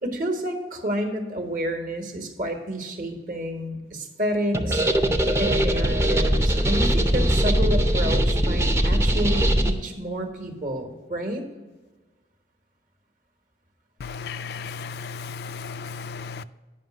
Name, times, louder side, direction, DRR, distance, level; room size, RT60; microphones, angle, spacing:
voice 1, 0.0-4.8 5.4-11.4, equal, 50° right, 4 dB, 1.3 m, -29 dB
sound 1, 4.5-9.7, right 1 dB, 15° right, 0.5 m, -21 dB
voice 2, 14.0-16.4, left 5 dB, 60° left, 13 dB, 0.3 m, -35 dB
9.2 x 5.7 x 6.2 m, 1.2 s
head